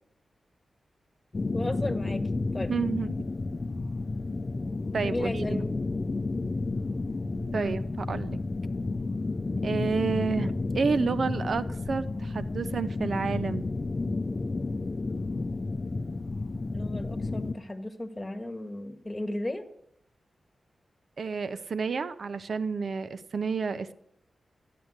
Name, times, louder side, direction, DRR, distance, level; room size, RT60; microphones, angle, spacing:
sound 1, 1.3-17.5, left 3 dB, 35° left, 0.7 m, -31 dB
voice 1, 1.5-2.2 2.5-2.7 5.0-5.8 7.5-7.7 16.7-19.6, left 1 dB, 15° left, 6 dB, 1.7 m, -34 dB
voice 2, 2.7-3.1 4.9-5.6 7.5-7.8 8.1-8.4 9.6-13.6 21.2-23.9, right 5 dB, 65° right, 12 dB, 0.8 m, -30 dB
sound 2, 6.7-8.4 9.4-11.0 11.9-12.4, right 1 dB, 30° right, 7.0 m, -50 dB
13.5 x 10.5 x 8.1 m, 0.75 s
wide cardioid pair, 90°, 0 cm